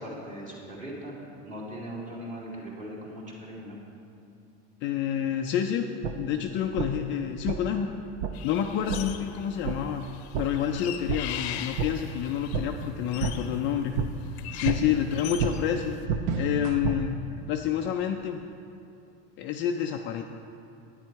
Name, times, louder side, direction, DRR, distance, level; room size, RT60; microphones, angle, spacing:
voice 1, 0.0-3.8 14.6-14.8, right 1 dB, 25° right, -4 dB, 2.4 m, -39 dB
voice 2, 4.8-5.9 6.2-7.9 8.4-10.1 10.4-14.0 14.5-16.0 16.3-17.2 17.5-18.4 19.4-20.2, left 9 dB, 35° left, 4 dB, 0.4 m, -28 dB
sound 1, 6.0-6.1 6.8-6.9 7.4-7.6 8.2-8.3 8.9-9.0 9.6-9.7 10.3-10.4 11.1-11.2 11.8-11.9 12.5-12.6 13.2-13.3 13.9-14.1 14.6-14.8 15.4-15.5 16.1-17.0, right 6 dB, 75° right, 0.9 m, -28 dB
sound 2, 8.3-9.5 9.8-16.0, left 11 dB, 75° left, 0.7 m, -41 dB
10.5 x 9.8 x 4.6 m, 2.7 s
supercardioid pair, 155°, 33 cm